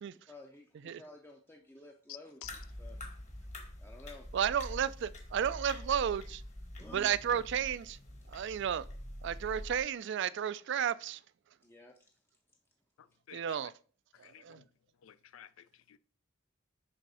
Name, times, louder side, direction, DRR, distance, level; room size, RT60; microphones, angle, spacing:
voice 1, 0.3-3.0 3.8-4.3 6.8-7.4 11.6-12.0, left 2 dB, 10° left, 0.5 m, -52 dB
sound 1, 2.4-9.8, left 1 dB, 35° left, 1.2 m, -46 dB
voice 2, 4.3-6.4 6.9-8.0 8.3-8.8 9.2-11.2 13.3-13.7 14.4-14.6, right 8 dB, 60° right, 0.3 m, -32 dB
voice 3, 13.0-13.6 14.1-14.7 15.0-16.0, left 11 dB, 75° left, 0.4 m, -53 dB
6.5 x 3.5 x 5.5 m
head